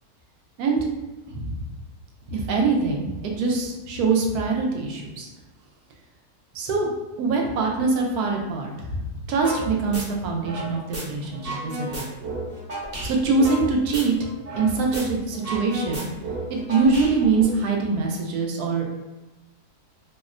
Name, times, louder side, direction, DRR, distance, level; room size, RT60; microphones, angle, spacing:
voice 1, 2.3-5.3 6.5-6.9 7.2-12.1 13.0-14.1 14.6-16.0 16.5-18.9, right 4 dB, 80° right, 0 dB, 1.1 m, -23 dB
sound 1, 9.4-9.6 9.9-11.0 11.3-14.7 14.9-15.0 15.3-17.4, right 2 dB, 30° right, 0.9 m, -32 dB
4.2 x 2.1 x 2.4 m, 1.1 s
omnidirectional pair, 1.6 m